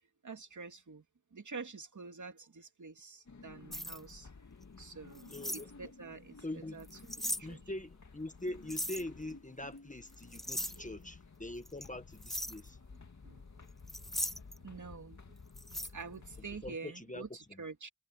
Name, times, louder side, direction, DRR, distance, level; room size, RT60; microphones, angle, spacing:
voice 1, 0.2-1.0 1.3-4.3 4.8-6.9 7.4-7.6 10.8-11.0 13.2-13.4 14.0-14.1 14.6-15.4 15.8-17.9, right 4 dB, 40° right, 2.7 m, -47 dB
sound 1, 3.3-16.8, left 4 dB, 40° left, 2.2 m, -54 dB
sound 2, 3.7-4.0 5.2-5.6 6.8-7.4 8.7-9.0 10.1-10.8 11.7-11.9 12.2-12.6 13.9-14.6 15.6-15.9, equal, ahead, 0.9 m, -38 dB
voice 2, 5.3-5.7 6.4-6.8 7.4-12.8 16.6-17.2, left 1 dB, 15° left, 1.5 m, -43 dB
wide cardioid pair, 90°, 44 cm